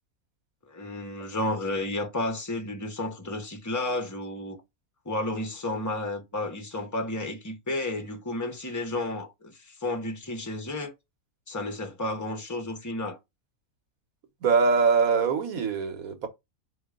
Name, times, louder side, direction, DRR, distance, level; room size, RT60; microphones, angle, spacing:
voice 1, 0.7-4.6 5.0-10.9 11.5-13.2, left 1 dB, 15° left, 1.0 m, -32 dB
voice 2, 14.4-16.3, right 5 dB, 80° right, 1.4 m, -23 dB
4.7 x 3.1 x 3.7 m
omnidirectional pair, 1.5 m